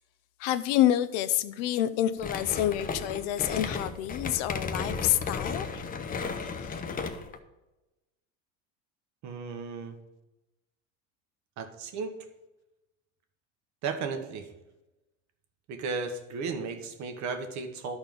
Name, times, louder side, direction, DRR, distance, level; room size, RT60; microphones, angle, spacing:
voice 1, 0.4-6.1 6.4-6.8, left 12 dB, 70° left, 13 dB, 0.7 m, -28 dB
sound 1, 2.2-7.4, left 5 dB, 25° left, 0.8 m, -34 dB
voice 2, 9.2-10.0 11.6-12.1 13.8-14.5 15.7-18.0, right 4 dB, 50° right, 6 dB, 1.5 m, -34 dB
11.5 x 4.4 x 5.3 m, 1.0 s
supercardioid pair, 120°, 37 cm